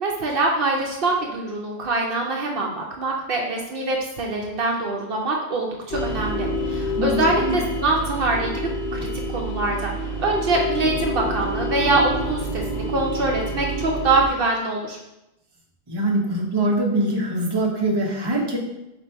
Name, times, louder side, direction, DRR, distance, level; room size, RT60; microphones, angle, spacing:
voice 1, 0.0-9.0 9.3-9.9 10.2-15.0, right 2 dB, 65° right, 0 dB, 0.8 m, -24 dB
sound 1, 5.9-14.3, equal, 70° left, 1.0 m, -27 dB
voice 2, 7.0-7.6 15.9-18.6, right 1 dB, 25° right, -2 dB, 0.7 m, -23 dB
4.4 x 2.7 x 4.3 m, 0.93 s
omnidirectional pair, 1.1 m